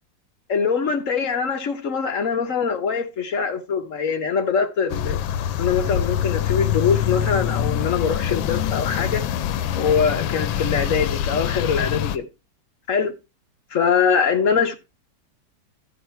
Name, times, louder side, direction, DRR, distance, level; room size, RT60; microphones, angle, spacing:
voice 1, 0.5-5.2 5.6-9.2 9.8-12.3 12.9-13.1 13.7-14.7, left 6 dB, 45° left, 1.4 m, -23 dB
sound 1, 4.9-12.2, left 10 dB, 90° left, 1.4 m, -24 dB
13.5 x 5.0 x 4.4 m
omnidirectional pair, 2.1 m